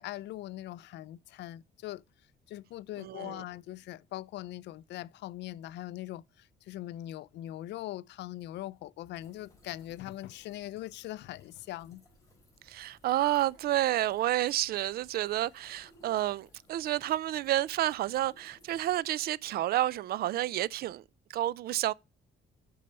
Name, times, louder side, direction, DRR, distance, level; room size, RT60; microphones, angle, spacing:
voice 1, 0.0-2.0 2.5-12.0, left 14 dB, 75° left, 0.4 m, -41 dB
voice 2, 3.0-3.4 12.7-21.0 21.3-21.9, right 14 dB, 60° right, 0.4 m, -30 dB
sound 1, 9.1-19.0, left 1 dB, 20° left, 4.2 m, -63 dB
8.4 x 5.5 x 5.4 m
cardioid pair, 165°, 18 cm